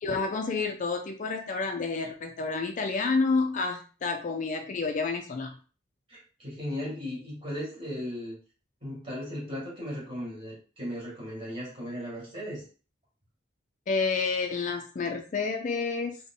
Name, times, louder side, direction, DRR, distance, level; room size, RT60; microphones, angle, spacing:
voice 1, 0.0-5.5 13.9-16.2, left 4 dB, 40° left, 4 dB, 0.3 m, -29 dB
voice 2, 6.1-8.4 8.8-12.6, equal, 30° right, -5 dB, 2.0 m, -36 dB
3.6 x 2.1 x 3.7 m, 0.37 s
head